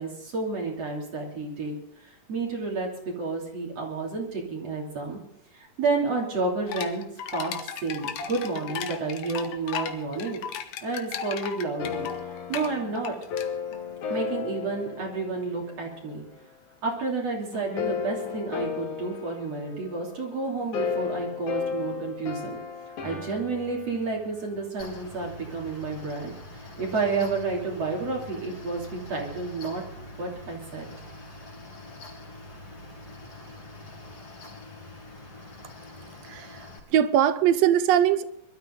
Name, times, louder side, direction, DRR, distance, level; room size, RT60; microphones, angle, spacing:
voice 1, 0.0-1.7 2.0-5.2 5.5-7.0 7.3-7.5 7.8-10.4 10.8-13.1 14.1-16.2 16.8-22.6 23.0-29.8 30.2-30.9, right 3 dB, 55° right, -1 dB, 4.2 m, -30 dB
sound 1, 6.7-13.8, left 8 dB, 75° left, 2.4 m, -36 dB
sound 2, 11.8-16.4 17.5-24.7, left 6 dB, 90° left, 3.3 m, -35 dB
Mechanical fan, 24.8-36.8, left 1 dB, 55° left, 4.6 m, -44 dB
voice 2, 36.2-38.2, right 10 dB, 70° right, 14 dB, 1.8 m, -22 dB
23.5 x 12.5 x 3.9 m, 0.75 s
omnidirectional pair, 3.4 m